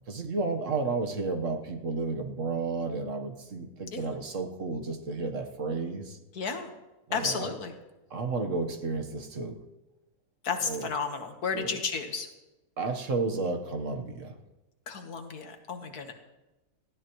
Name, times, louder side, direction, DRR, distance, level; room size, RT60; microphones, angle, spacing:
voice 1, 0.1-6.2 7.1-7.5 8.1-9.6 10.6-10.9 11.5-11.8 12.8-14.4, right 3 dB, 55° right, 5 dB, 1.5 m, -32 dB
voice 2, 6.4-6.7 7.1-7.7 10.4-12.3 14.9-16.1, left 5 dB, 75° left, 6 dB, 1.8 m, -32 dB
19.0 x 15.0 x 3.1 m, 1.0 s
omnidirectional pair, 1.6 m